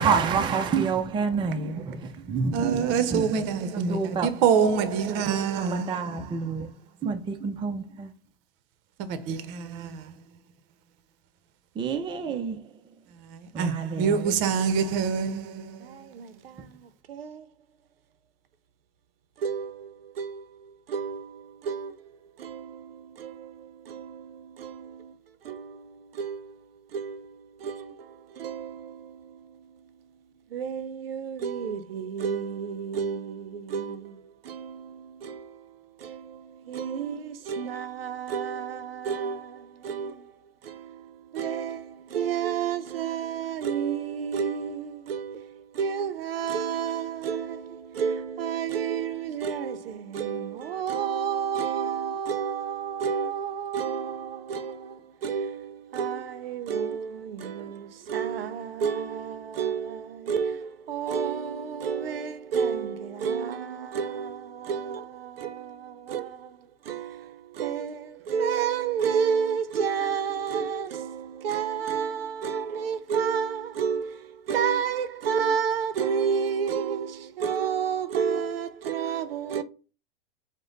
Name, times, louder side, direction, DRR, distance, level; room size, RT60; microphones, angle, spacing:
voice 1, 0.0-3.5 3.7-4.3 5.1-6.7 7.0-8.1 11.8-12.7 13.5-14.3, right 5 dB, 15° right, 0.5 m, -28 dB
voice 2, 2.5-6.2 9.0-10.1 13.3-16.0, right 6 dB, 40° right, 0.8 m, -26 dB
voice 3, 15.8-17.5 19.4-25.2 25.4-29.8 30.5-79.6, right 7 dB, 80° right, 0.6 m, -31 dB
4.8 x 2.2 x 3.9 m
hypercardioid pair, 115°, 29 cm